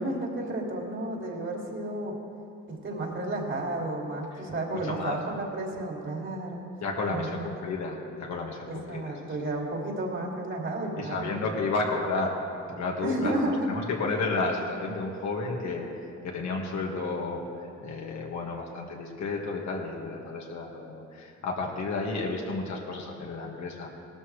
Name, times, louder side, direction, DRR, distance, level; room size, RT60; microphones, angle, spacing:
voice 1, 0.0-2.1 2.7-6.6 7.1-7.5 8.7-11.4 13.0-13.7, right 1 dB, 40° right, -1 dB, 2.7 m, -32 dB
voice 2, 4.7-5.2 6.8-9.5 11.0-12.3 12.7-15.9 16.2-24.0, left 3 dB, 65° left, -1 dB, 2.0 m, -32 dB
17.5 x 13.0 x 3.3 m, 2.7 s
cardioid pair, 90°, 30 cm